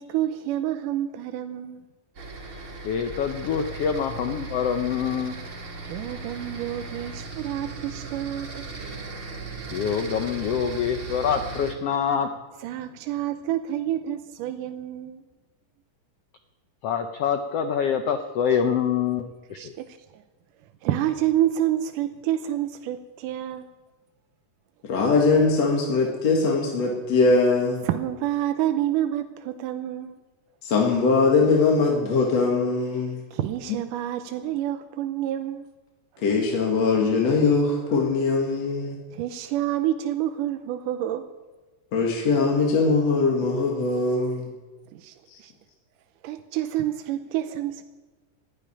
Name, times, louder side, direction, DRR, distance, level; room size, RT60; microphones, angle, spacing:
voice 1, 0.0-1.8 5.8-8.7 12.6-15.2 19.6-20.2 20.8-23.7 27.8-30.2 33.3-35.7 39.1-41.3 44.9-45.1 45.4-45.5 46.2-47.8, right 12 dB, 80° right, 8 dB, 2.3 m, -28 dB
sound 1, 2.2-11.7, right 3 dB, 40° right, 2.7 m, -37 dB
voice 2, 2.8-5.4 9.7-12.3 16.8-19.7, left 7 dB, 75° left, 6 dB, 1.4 m, -25 dB
voice 3, 24.8-27.8 30.6-33.2 36.2-39.0 41.9-44.5 45.3-45.4, left 3 dB, 55° left, -1 dB, 3.0 m, -21 dB
12.0 x 12.0 x 9.9 m, 1.2 s
omnidirectional pair, 3.7 m